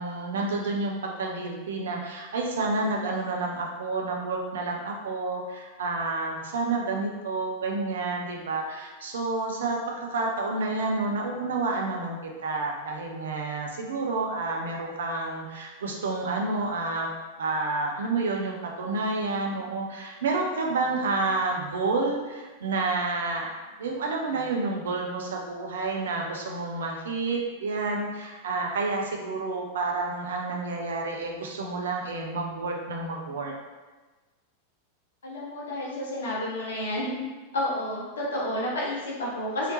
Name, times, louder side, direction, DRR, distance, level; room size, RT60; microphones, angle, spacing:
voice 1, 0.0-17.1 17.4-23.5 23.8-33.5, right 3 dB, 65° right, 0 dB, 0.6 m, -29 dB
voice 2, 35.2-37.2 37.5-39.7, left 1 dB, 65° left, -4 dB, 0.9 m, -30 dB
3.3 x 2.8 x 2.8 m, 1.3 s
figure-of-eight pair, 90°, 0 cm